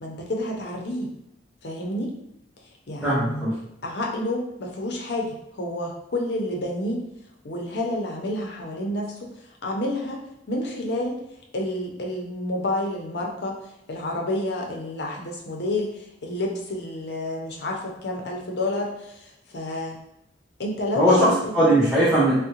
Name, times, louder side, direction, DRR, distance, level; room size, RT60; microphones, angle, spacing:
voice 1, 0.0-1.1 1.6-2.1 2.9-3.5 3.8-7.0 7.4-9.3 9.6-11.2 11.5-13.6 13.9-20.0 20.6-21.3, left 1 dB, 65° left, 0 dB, 0.6 m, -29 dB
voice 2, 3.0-3.5 21.0-22.4, right 1 dB, 5° right, -11 dB, 0.7 m, -19 dB
3.6 x 2.1 x 2.8 m, 0.84 s
head